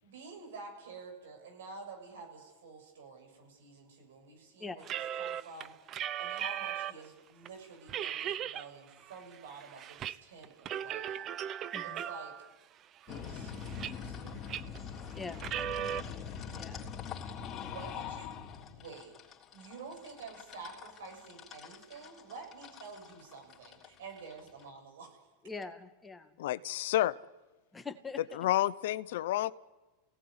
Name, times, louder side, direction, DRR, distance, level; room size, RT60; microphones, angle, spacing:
voice 1, 0.0-4.8 5.2-5.7 6.2-11.2 11.8-12.3 13.1-14.5 17.6-18.3 18.7-19.1 19.5-25.2, right 4 dB, 80° right, 3 dB, 7.3 m, -49 dB
sound 1, 4.8-7.1 7.5-7.6 7.9-8.7 9.0-10.2 10.4-12.5 13.0-14.2 14.5-14.8 15.3-16.0, right 10 dB, 40° right, 0.8 m, -37 dB
sound 2, 13.1-24.6, left 7 dB, 30° left, 3.5 m, -43 dB
voice 2, 15.2-15.6 16.5-16.9 25.4-26.3 27.7-28.2, left 4 dB, 15° left, 6 dB, 1.9 m, -43 dB
voice 3, 26.4-27.2 28.4-29.5, left 14 dB, 75° left, 16 dB, 0.8 m, -30 dB
29.0 x 17.5 x 9.8 m, 1.2 s
hypercardioid pair, 105°, 0 cm